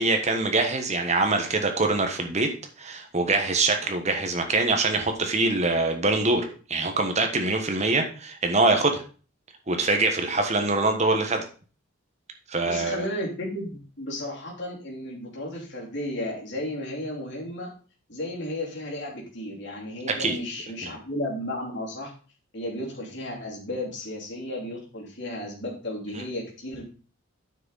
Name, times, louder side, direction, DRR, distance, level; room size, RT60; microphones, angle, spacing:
voice 1, 0.0-2.5 2.8-9.0 9.7-11.4 12.5-13.0 20.2-20.4 20.8-21.0 26.1-26.2, right 3 dB, 30° right, 5 dB, 1.3 m, -24 dB
voice 2, 12.6-17.7 18.1-22.1 22.5-26.8, left 1 dB, 55° left, -3 dB, 3.1 m, -34 dB
9.2 x 6.1 x 4.1 m, 0.38 s
head